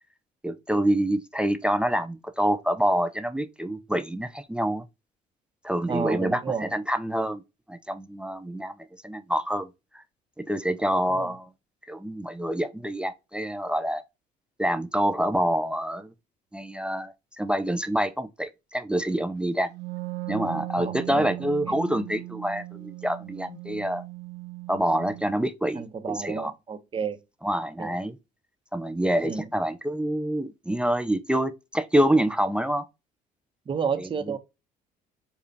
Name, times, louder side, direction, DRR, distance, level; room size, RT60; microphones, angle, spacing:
voice 1, 0.4-4.8 5.6-7.4 7.7-8.7 9.0-9.7 9.9-10.0 10.4-11.5 11.9-14.0 14.6-16.1 16.5-19.7 20.3-24.0 24.7-26.5 27.4-28.2 28.7-32.8 34.0-34.4, right 1 dB, 5° right, 0.4 m, -27 dB
voice 2, 5.9-6.7 20.8-21.3 25.8-27.2 27.8-27.9 29.2-29.5 33.7-34.4, right 6 dB, 30° right, 0.8 m, -31 dB
Wind instrument woodwind instrument, 19.7-25.4, right 22 dB, 85° right, 0.4 m, -38 dB
6.7 x 2.4 x 2.7 m
cardioid pair, 110°, 17 cm